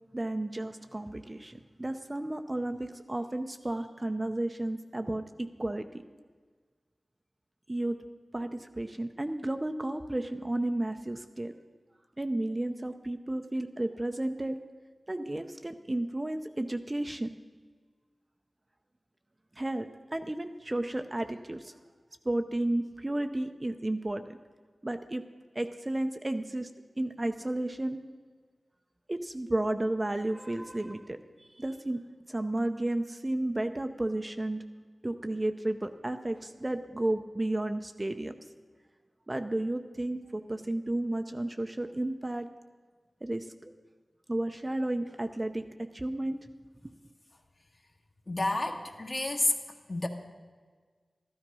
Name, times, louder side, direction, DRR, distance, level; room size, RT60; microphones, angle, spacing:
voice 1, 0.1-6.0 7.7-8.0 8.3-11.5 12.2-14.6 15.1-17.3 19.6-21.8 22.2-24.2 24.8-25.2 25.5-26.7 27.0-28.0 29.1-32.0 32.3-34.6 35.0-38.3 39.3-42.5 43.2-43.7 44.3-46.4 46.8-46.9, right 1 dB, 25° right, 7 dB, 0.6 m, -32 dB
voice 2, 48.3-49.5 49.9-50.1, left 2 dB, 40° left, 3 dB, 1.5 m, -29 dB
13.5 x 13.0 x 5.4 m, 1.5 s
wide cardioid pair, 80°, 0 cm